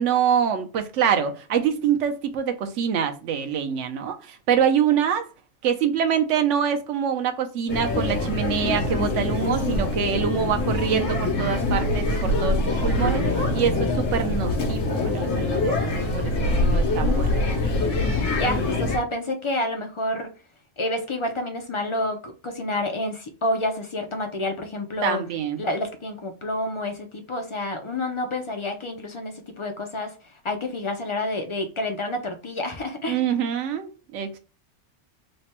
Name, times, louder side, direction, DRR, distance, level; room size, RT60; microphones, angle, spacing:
voice 1, 0.0-5.3 5.6-17.4 25.0-25.6 33.1-34.4, right 8 dB, 75° right, 0.9 m, -25 dB
sound 1, 7.7-19.0, left 2 dB, 85° left, 1.3 m, -24 dB
voice 2, 18.3-20.3 20.8-25.2 25.6-33.2, left 1 dB, 50° left, 0.3 m, -29 dB
3.3 x 2.2 x 4.1 m
omnidirectional pair, 1.3 m